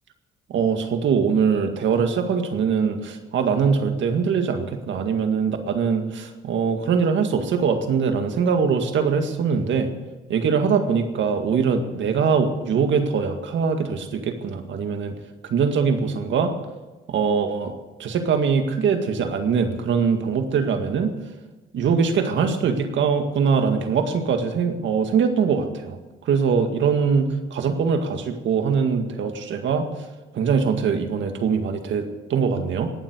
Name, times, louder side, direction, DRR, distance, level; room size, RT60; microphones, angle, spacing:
voice 1, 0.5-9.9 10.3-15.1 15.5-16.5 17.1-17.7 18.0-21.1 21.7-26.0 26.3-29.9 30.3-32.9, right 6 dB, 70° right, 6 dB, 2.0 m, -22 dB
19.0 x 7.4 x 8.3 m, 1.2 s
cardioid pair, 90°, 20 cm